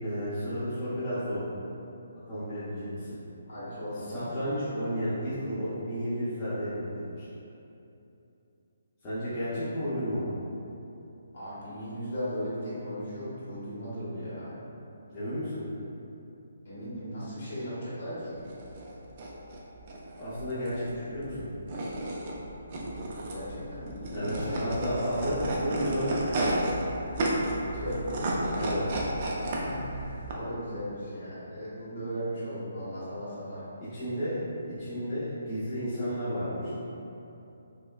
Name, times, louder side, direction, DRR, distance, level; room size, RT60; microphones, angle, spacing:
voice 1, 0.0-1.4 2.3-3.1 4.1-7.3 9.0-10.3 15.1-15.6 20.2-21.5 24.1-26.4 28.6-28.8 33.8-34.4 34.7-36.7, equal, 10° left, -16 dB, 0.6 m, -32 dB
voice 2, 3.5-4.2 11.3-14.5 16.6-18.4 23.2-24.8 25.1-25.5 27.6-28.0 29.5-33.6, equal, 45° left, -10 dB, 1.4 m, -37 dB
sound 1, 18.4-30.3, right 1 dB, 25° right, 0.4 m, -32 dB
5.4 x 2.1 x 2.3 m, 2.8 s
hypercardioid pair, 175°, 0 cm